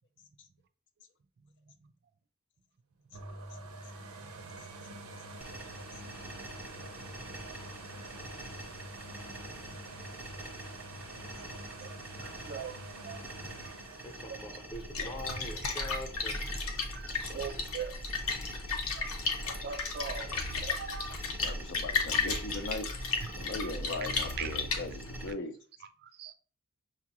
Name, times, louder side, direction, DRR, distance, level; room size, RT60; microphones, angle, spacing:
sound 1, 3.1-16.8 17.3-17.4, right 2 dB, 80° right, 0.7 m, -47 dB
sound 2, 5.4-25.3, right 1 dB, 10° right, 0.7 m, -47 dB
voice 1, 12.2-12.8 13.1-13.2 13.6-13.7 14.3-14.4 15.6-15.8 16.4-16.6 16.9-17.9 18.5-18.6 18.9-19.1 19.4-21.2 23.7-23.9 24.4-24.6 26.0-26.3, right 7 dB, 50° right, 0.4 m, -41 dB
voice 2, 14.0-16.5, equal, 25° left, 0.8 m, -43 dB
Splash splatter, 14.7-25.3, left 4 dB, 90° left, 0.8 m, -34 dB
voice 3, 21.4-23.0 23.4-25.6, left 2 dB, 55° left, 0.5 m, -39 dB
5.9 x 2.4 x 2.9 m
head